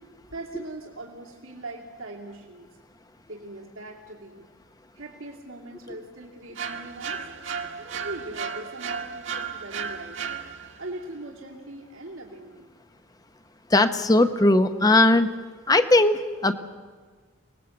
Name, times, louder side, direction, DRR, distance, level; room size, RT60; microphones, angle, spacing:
voice 1, 0.3-2.7 3.3-4.5 4.9-7.3 7.8-10.2 10.8-12.7, right 2 dB, 80° right, -2 dB, 2.8 m, -40 dB
sound 1, 6.6-10.9, right 6 dB, 65° right, 1.5 m, -34 dB
voice 2, 13.7-15.3 15.7-16.5, left 2 dB, 20° left, 9 dB, 0.8 m, -19 dB
27.0 x 19.5 x 7.9 m, 1.5 s
head